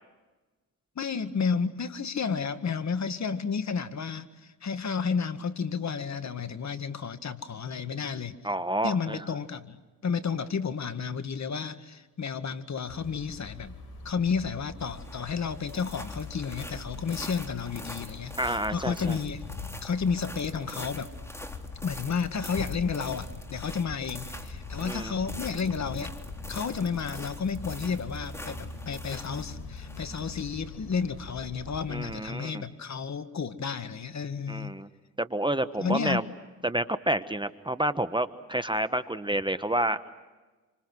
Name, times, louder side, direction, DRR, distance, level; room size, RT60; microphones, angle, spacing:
voice 1, 1.0-8.4 8.8-9.8 10.0-13.8 14.0-19.4 19.8-21.1 21.8-26.1 26.5-34.7 35.8-36.2, left 6 dB, 40° left, 11 dB, 1.9 m, -31 dB
voice 2, 8.4-9.2 18.4-19.2 24.8-25.2 31.9-32.6 34.5-34.9 35.2-36.2 36.6-40.1, right 1 dB, 10° right, 11 dB, 1.3 m, -29 dB
sound 1, 12.9-32.2, left 3 dB, 60° left, 5.0 m, -42 dB
sound 2, 14.8-31.7, left 1 dB, 5° left, 3.2 m, -45 dB
27.5 x 26.0 x 6.3 m, 1.2 s
hypercardioid pair, 55°, 41 cm